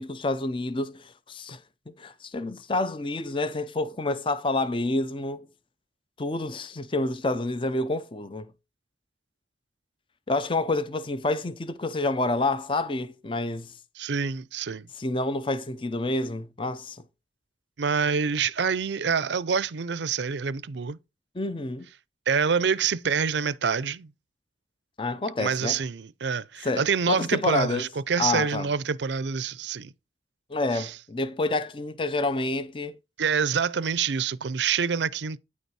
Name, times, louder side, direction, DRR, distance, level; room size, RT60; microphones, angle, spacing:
voice 1, 0.0-1.6 2.0-5.5 6.2-8.5 10.3-13.7 15.0-17.0 21.4-21.9 25.0-25.8 26.6-27.9 28.2-28.7 30.5-32.9, left 2 dB, 30° left, 0.6 m, -28 dB
voice 2, 14.0-14.9 17.8-21.0 22.3-24.1 25.4-29.9 30.7-30.9 33.2-35.4, right 6 dB, 80° right, 0.5 m, -26 dB
9.5 x 5.3 x 4.8 m
head